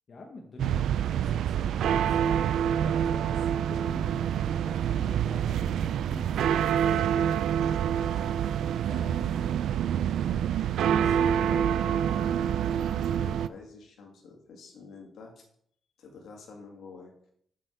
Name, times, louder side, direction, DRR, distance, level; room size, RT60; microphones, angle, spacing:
voice 1, 0.1-7.4 7.6-8.4 8.8-9.9 10.3-10.6, left 3 dB, 45° left, 1 dB, 1.2 m, -47 dB
sound 1, 0.6-13.5, right 9 dB, 85° right, 0.4 m, -26 dB
voice 2, 10.9-15.3 16.0-17.1, left 3 dB, 75° left, 1 dB, 2.3 m, -47 dB
7.7 x 6.6 x 4.7 m, 0.66 s
cardioid pair, 115°, 0 cm